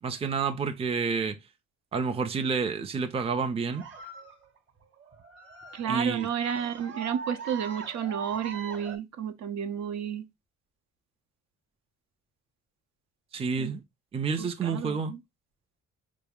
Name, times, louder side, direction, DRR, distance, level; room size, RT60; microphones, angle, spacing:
voice 1, 0.0-1.4 1.9-3.9 5.9-6.3 13.3-13.8 14.1-15.1, right 5 dB, 20° right, 0.5 m, -29 dB
sound 1, 3.7-9.0, right 5 dB, 40° right, 1.0 m, -41 dB
voice 2, 5.7-10.3 13.6-13.7 14.4-15.2, right 8 dB, 65° right, 0.7 m, -31 dB
4.0 x 2.0 x 3.5 m
cardioid pair, 90°, 30 cm